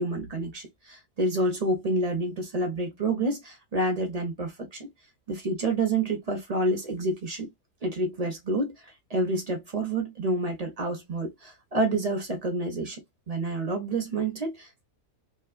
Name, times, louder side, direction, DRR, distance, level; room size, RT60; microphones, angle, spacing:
voice 1, 0.0-4.9 5.3-7.5 7.8-8.7 9.1-14.8, right 2 dB, 40° right, 0.6 m, -28 dB
3.0 x 2.2 x 2.4 m
omnidirectional pair, 1.4 m